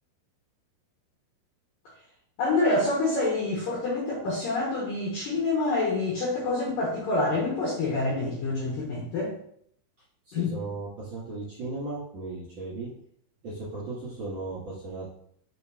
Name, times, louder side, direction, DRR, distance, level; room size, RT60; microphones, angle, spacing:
voice 1, 2.4-9.4 10.3-10.5, left 2 dB, 65° left, -5 dB, 2.3 m, -27 dB
voice 2, 10.2-12.9 13.4-15.1, right 3 dB, 45° right, -8 dB, 2.4 m, -36 dB
6.6 x 5.7 x 2.6 m, 0.66 s
omnidirectional pair, 5.5 m